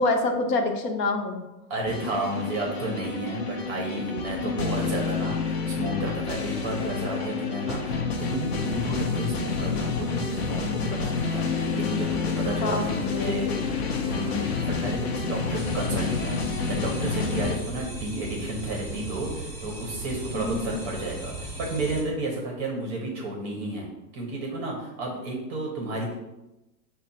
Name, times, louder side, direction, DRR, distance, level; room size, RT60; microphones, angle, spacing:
voice 1, 0.0-1.4 4.3-4.6 12.4-12.8 13.1-13.5 20.3-20.9, left 2 dB, 75° left, 4 dB, 0.9 m, -27 dB
voice 2, 1.7-13.6 14.1-23.9 24.1-26.1, right 1 dB, 20° right, -1 dB, 0.5 m, -32 dB
sound 1, 1.9-17.6, left 4 dB, 40° left, 0.5 m, -29 dB
sound 2, 15.6-22.0, right 1 dB, 5° left, 0.9 m, -37 dB
4.2 x 2.1 x 4.0 m, 0.97 s
hypercardioid pair, 125°, 50 cm